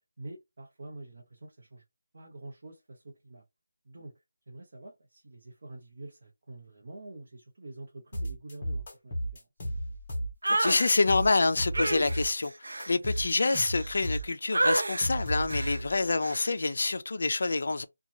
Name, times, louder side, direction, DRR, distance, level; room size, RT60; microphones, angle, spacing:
voice 1, 0.2-1.8 2.1-3.4 3.8-4.1 4.5-9.5, right 2 dB, 45° right, 0.8 m, -46 dB
sound 1, 8.1-10.5 10.8-12.5 12.8-16.0, equal, 20° left, 0.9 m, -34 dB
sound 2, 10.4-10.9 11.7-14.2 14.5-15.1 15.5-15.8 16.2-16.5, right 2 dB, 80° right, 0.5 m, -30 dB
voice 2, 10.5-12.5 12.9-17.9, left 3 dB, 45° left, 0.4 m, -27 dB
2.9 x 2.3 x 2.6 m
figure-of-eight pair, 175°, 0 cm